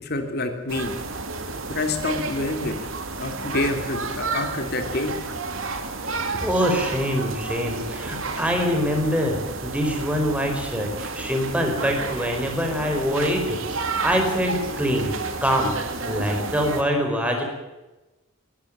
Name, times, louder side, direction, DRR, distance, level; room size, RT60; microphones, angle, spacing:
voice 1, 0.0-0.9 1.7-2.7 3.2-5.1, left 2 dB, 50° left, 6 dB, 3.2 m, -27 dB
sound 1, 0.7-16.8, right 4 dB, 70° right, 2.8 m, -31 dB
voice 2, 6.0-15.1 15.4-15.7 16.0-17.4, equal, 5° right, 2 dB, 4.9 m, -24 dB
23.0 x 13.5 x 8.9 m, 1.1 s
head